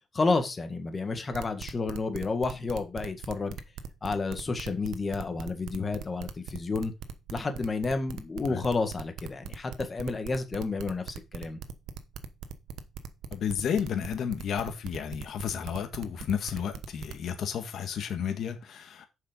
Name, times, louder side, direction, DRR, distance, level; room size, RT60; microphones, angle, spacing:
voice 1, 0.1-3.6 4.0-6.9 7.3-11.6, left 3 dB, 30° left, 1.8 m, -30 dB
sound 1, 1.3-17.3, right 8 dB, 85° right, 1.0 m, -40 dB
voice 2, 13.3-19.1, left 8 dB, 65° left, 1.7 m, -32 dB
7.2 x 5.6 x 5.3 m
cardioid pair, 90°, 0 cm